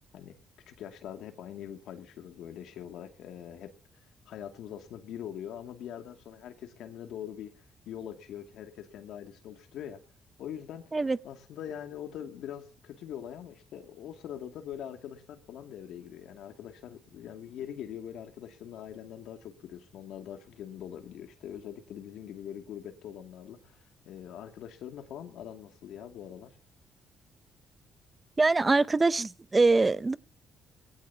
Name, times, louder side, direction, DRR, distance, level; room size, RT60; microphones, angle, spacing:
voice 1, 0.7-10.0 10.4-10.8 11.2-26.6, left 10 dB, 80° left, 2.4 m, -43 dB
voice 2, 28.4-30.2, right 3 dB, 25° right, 0.6 m, -23 dB
21.0 x 17.0 x 2.8 m
cardioid pair, 90°, 0 cm